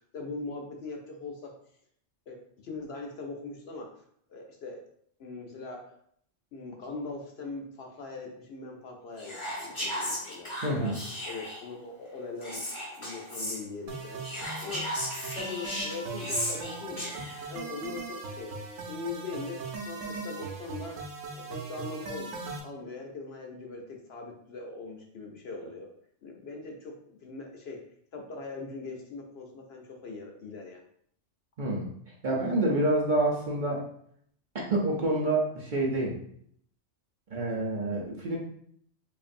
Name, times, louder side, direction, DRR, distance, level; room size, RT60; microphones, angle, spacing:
voice 1, 0.1-1.5 2.3-3.9 4.3-4.8 5.2-5.9 6.5-10.9 11.3-12.7 13.0-15.0 15.3-17.2 17.5-21.0 21.3-25.9 26.2-27.8 28.1-30.8, left 3 dB, 60° left, 1 dB, 0.8 m, -41 dB
Whispering, 9.2-11.7 12.4-13.6 14.2-17.5, equal, 25° left, 1.5 m, -35 dB
voice 2, 10.6-10.9 31.6-33.8 34.7-36.1 37.3-38.4, right 2 dB, 50° right, -3 dB, 0.7 m, -27 dB
sound 1, 13.9-22.6, right 3 dB, 80° right, 1.1 m, -39 dB
5.1 x 2.6 x 2.5 m, 0.67 s
omnidirectional pair, 1.3 m